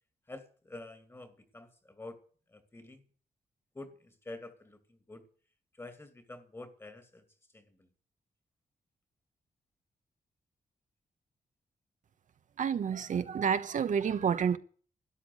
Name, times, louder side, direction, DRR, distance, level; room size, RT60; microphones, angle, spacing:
voice 1, 0.3-2.2 2.5-3.0 3.7-5.3 5.7-7.3 7.5-7.9, left 2 dB, 15° left, 2.5 m, -48 dB
voice 2, 12.6-14.6, right 7 dB, 60° right, 1.0 m, -29 dB
13.0 x 10.5 x 8.0 m
wide cardioid pair, 130°, 15 cm